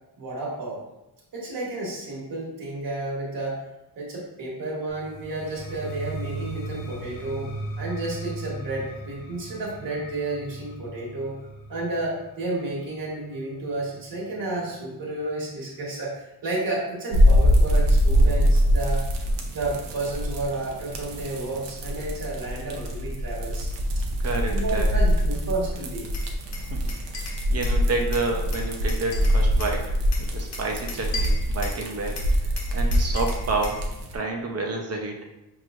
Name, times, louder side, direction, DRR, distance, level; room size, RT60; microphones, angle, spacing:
voice 1, 0.2-0.8 1.3-3.6 4.0-7.5 7.8-11.3 11.7-19.1 19.5-23.7 24.5-26.1, right 2 dB, 55° right, -5 dB, 1.5 m, -31 dB
sound 1, 4.9-14.7, right 2 dB, 55° left, 1.0 m, -38 dB
sound 2, 17.1-34.2, equal, 85° right, 0.8 m, -24 dB
voice 2, 24.2-25.0 26.5-26.8 27.5-29.9 30.2-32.2 32.7-33.8 34.1-35.2, right 3 dB, 35° right, 1 dB, 0.8 m, -29 dB
Glass, 26.1-27.8 28.1-29.8 30.1-31.8 32.2-33.8, left 4 dB, 90° left, 1.1 m, -37 dB
5.1 x 3.1 x 2.5 m, 0.92 s
cardioid pair, 100°, 41 cm